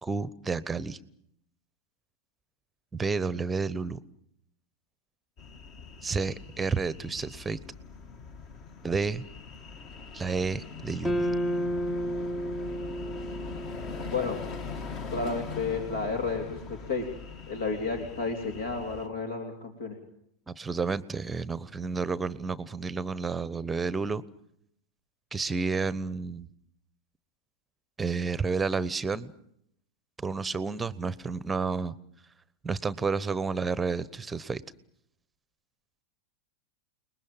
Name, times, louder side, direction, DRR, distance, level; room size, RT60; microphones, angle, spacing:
voice 1, 0.0-1.0 2.9-4.0 6.0-7.6 8.8-9.3 10.1-11.3 20.5-24.2 25.3-26.5 28.0-29.3 30.2-31.9 32.6-34.6, right 4 dB, 15° right, 18 dB, 1.1 m, -30 dB
sound 1, 5.4-19.1, left 5 dB, 40° left, 2.8 m, -42 dB
sound 2, 11.0-15.4, equal, 10° left, 1.1 m, -32 dB
voice 2, 15.1-17.0 17.5-20.0, left 4 dB, 60° left, 3 dB, 3.6 m, -32 dB
30.0 x 20.5 x 7.4 m, 0.74 s
figure-of-eight pair, 90°, 0 cm